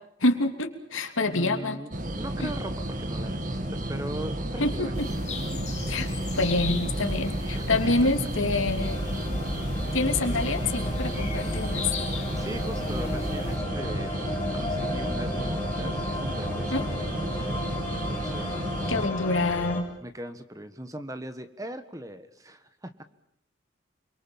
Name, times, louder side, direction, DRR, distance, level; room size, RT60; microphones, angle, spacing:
voice 1, 0.2-1.8 2.4-2.5 4.6-5.1 5.9-9.0 9.9-11.9 16.7-16.9 18.9-19.9, left 2 dB, 85° left, 6 dB, 3.1 m, -27 dB
voice 2, 1.2-5.0 7.5-7.9 8.2-8.3 12.2-17.6 17.9-18.7 20.0-23.0, right 1 dB, 15° right, 9 dB, 1.5 m, -40 dB
sound 1, 1.9-19.1, right 1 dB, 40° right, 2.1 m, -32 dB
sound 2, 4.9-13.6, left 1 dB, 35° left, 2.6 m, -35 dB
sound 3, 8.8-19.8, left 1 dB, 10° left, 6.6 m, -35 dB
29.0 x 23.0 x 7.3 m, 0.71 s
head